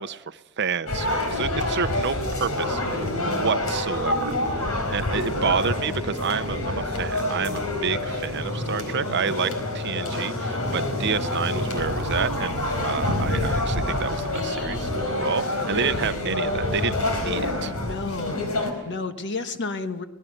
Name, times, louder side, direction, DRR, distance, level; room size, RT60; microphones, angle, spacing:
voice 1, 0.0-4.4 4.9-17.7, right 6 dB, 50° right, 13 dB, 0.7 m, -29 dB
sound 1, 0.9-18.7, left 1 dB, 80° left, 4.5 m, -27 dB
voice 2, 17.8-20.0, left 3 dB, 50° left, 8 dB, 1.4 m, -32 dB
24.0 x 19.5 x 6.6 m, 1.1 s
head